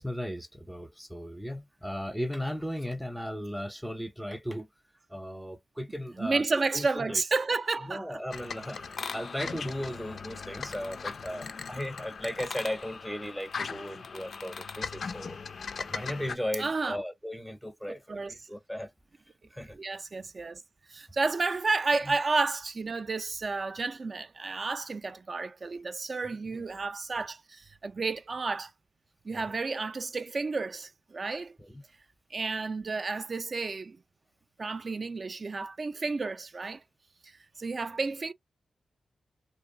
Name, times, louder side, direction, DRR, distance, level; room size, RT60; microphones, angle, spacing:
voice 1, 0.0-4.7 5.1-7.2 7.8-8.8 9.1-15.4 15.8-18.9 19.5-19.8 22.0-22.2 26.2-26.6 29.3-29.6 31.6-31.8, equal, ahead, 0.6 m, -36 dB
voice 2, 6.2-8.2 16.6-17.0 18.1-18.3 19.7-20.6 20.9-28.7 29.2-31.6 32.3-34.0 34.6-36.8 37.2-37.3 37.6-38.3, right 3 dB, 50° right, 0.3 m, -31 dB
sound 1, 8.3-16.4, left 5 dB, 65° left, 0.3 m, -39 dB
2.4 x 2.2 x 2.7 m
supercardioid pair, 40°, 0 cm